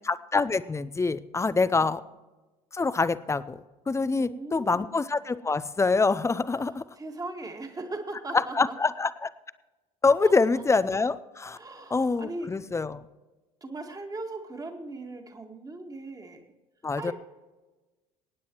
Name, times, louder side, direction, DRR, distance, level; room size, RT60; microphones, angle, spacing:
voice 1, 0.0-2.0 2.7-6.8 8.6-9.3 10.0-11.6 11.9-13.1 16.8-17.1, left 4 dB, 15° left, 15 dB, 0.6 m, -25 dB
voice 2, 1.6-1.9 4.2-4.9 6.6-8.8 10.2-10.7 11.5-12.5 13.6-16.5 17.0-17.1, right 2 dB, 20° right, 3 dB, 1.9 m, -39 dB
24.5 x 9.5 x 3.1 m, 1.2 s
hypercardioid pair, 65°, 20 cm